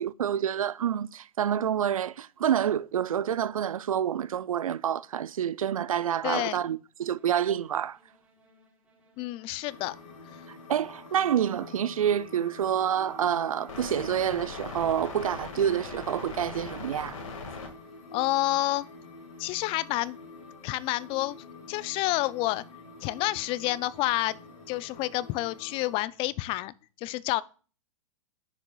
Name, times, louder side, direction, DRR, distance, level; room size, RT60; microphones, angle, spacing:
voice 1, 0.0-8.0 10.5-17.2, right 9 dB, 85° right, 0.4 m, -28 dB
voice 2, 6.2-6.6 9.2-10.0 18.1-18.9 19.4-20.2 20.6-21.3 21.7-22.6 23.0-24.4 24.7-26.7 27.0-27.4, left 17 dB, 30° left, 0.4 m, -29 dB
sound 1, 7.0-26.7, equal, 5° right, 3.8 m, -63 dB
sound 2, 9.7-26.0, left 4 dB, 75° left, 2.0 m, -44 dB
10.0 x 6.6 x 2.4 m
hypercardioid pair, 110°, 17 cm